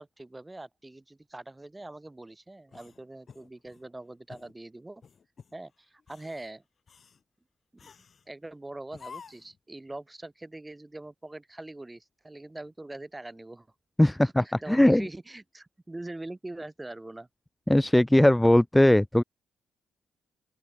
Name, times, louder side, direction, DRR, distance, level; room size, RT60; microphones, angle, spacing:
voice 1, 0.0-5.0 5.5-6.6 7.8-13.7 14.2-17.3, right 2 dB, 15° right, 4.6 m, -43 dB
sound 1, 2.7-3.9 4.3-4.5 5.0-5.6 6.0-6.5 6.9-7.2 7.8-8.3 8.9-9.6, left 6 dB, 45° left, 6.5 m, -50 dB
voice 2, 14.0-15.1 17.7-19.2, left 1 dB, 5° left, 0.3 m, -20 dB
open air
cardioid pair, 90°, 0 cm